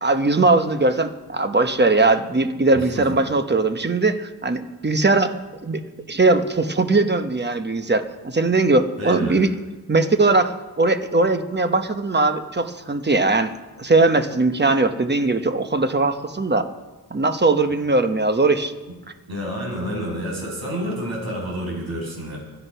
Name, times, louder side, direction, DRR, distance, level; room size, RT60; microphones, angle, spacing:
voice 1, 0.0-5.4 5.6-5.8 6.1-9.5 9.9-13.5 13.8-16.7 17.1-18.7, right 3 dB, 25° right, 8 dB, 1.0 m, -20 dB
voice 2, 2.7-3.1 9.0-9.4 19.3-22.4, equal, 70° right, -2 dB, 7.1 m, -29 dB
24.0 x 9.2 x 5.6 m, 1.2 s
wide cardioid pair, 95°, 39 cm